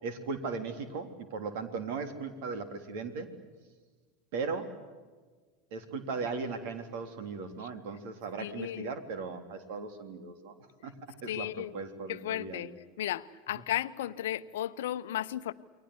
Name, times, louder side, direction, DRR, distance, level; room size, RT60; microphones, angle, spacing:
voice 1, 0.0-3.3 4.3-4.8 5.7-10.5 10.8-12.7, right 4 dB, 60° right, 8 dB, 3.5 m, -38 dB
voice 2, 8.4-8.9 11.3-11.7 12.1-12.7 13.0-15.5, left 12 dB, 65° left, 13 dB, 0.9 m, -34 dB
29.0 x 23.5 x 8.2 m, 1.4 s
figure-of-eight pair, 80°, 0 cm